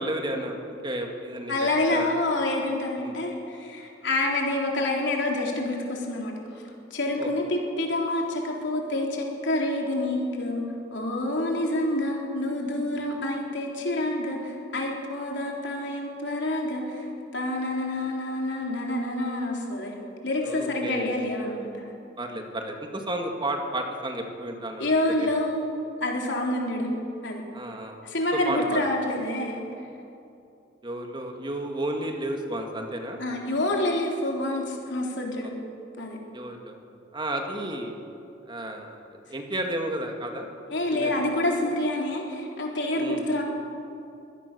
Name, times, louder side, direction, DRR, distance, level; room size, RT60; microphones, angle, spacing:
voice 1, 0.0-2.1 3.0-3.1 7.2-7.3 20.4-21.1 22.2-24.9 25.2-25.3 27.5-28.0 28.5-28.8 30.8-33.2 36.3-36.8 37.1-37.9 38.5-39.0 39.3-40.5 40.9-41.1 42.9-43.2, right 1 dB, 25° right, 3 dB, 2.1 m, -32 dB
voice 2, 1.5-6.6 6.9-10.6 10.9-17.1 17.3-19.9 20.2-21.9 24.8-25.7 26.0-26.9 27.2-27.4 28.0-29.6 33.2-35.5 36.0-36.2 40.7-43.4, left 1 dB, 65° left, 0 dB, 4.0 m, -27 dB
24.0 x 16.5 x 7.0 m, 2.7 s
head